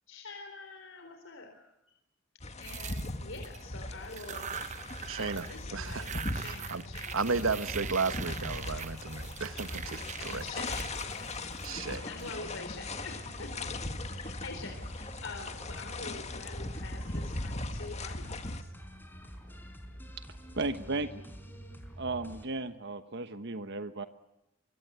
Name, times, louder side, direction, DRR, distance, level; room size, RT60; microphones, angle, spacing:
voice 1, 0.1-1.7 2.6-4.6 5.1-7.6 10.4-11.5 11.8-13.7 14.1-18.7, left 3 dB, 70° left, 4 dB, 4.1 m, -46 dB
sound 1, 2.4-18.6, left 2 dB, 35° left, 1.9 m, -39 dB
sound 2, 2.6-3.6 4.0-5.6 5.8-12.2, right 7 dB, 35° right, 0.9 m, -42 dB
voice 2, 5.1-5.5 5.7-6.8 7.1-10.4 11.6-12.1, right 4 dB, 85° right, 12 dB, 1.3 m, -34 dB
sound 3, 7.1-22.4, equal, 10° left, 4.5 m, -47 dB
voice 3, 20.6-21.2 22.0-24.1, right 3 dB, 60° right, 9 dB, 1.2 m, -35 dB
24.5 x 24.0 x 8.2 m, 0.88 s
head